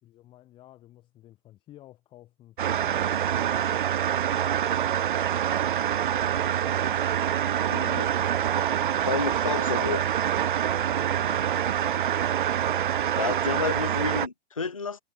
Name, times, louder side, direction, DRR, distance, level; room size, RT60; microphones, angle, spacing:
voice 1, 0.0-3.8 6.6-7.0 10.7-11.5, left 14 dB, 10° left, 3.6 m, -51 dB
sound 1, 2.6-14.3, right 10 dB, 40° right, 1.1 m, -26 dB
voice 2, 7.7-8.1 9.0-10.1 13.2-15.0, left 4 dB, 30° left, 0.4 m, -30 dB
hypercardioid pair, 180°, 39 cm